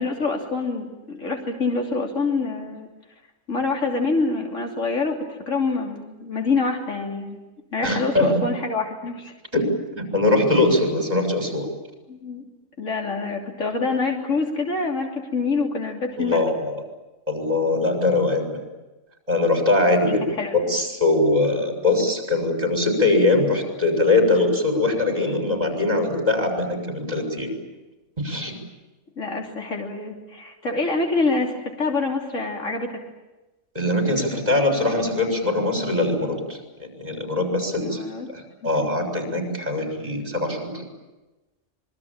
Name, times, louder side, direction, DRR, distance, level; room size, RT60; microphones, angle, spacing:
voice 1, 0.0-2.9 3.5-7.4 7.7-9.3 12.1-12.4 12.8-16.4 20.1-20.7 29.2-32.9 37.8-38.3, left 3 dB, 70° left, 1 dB, 3.5 m, -26 dB
voice 2, 7.8-8.4 9.5-9.7 9.9-11.7 16.2-16.7 17.3-18.5 19.3-20.2 20.7-27.5 28.2-28.5 33.7-38.0 38.3-40.8, left 2 dB, 30° right, 3 dB, 6.7 m, -22 dB
26.0 x 23.0 x 8.9 m, 1.1 s
omnidirectional pair, 1.3 m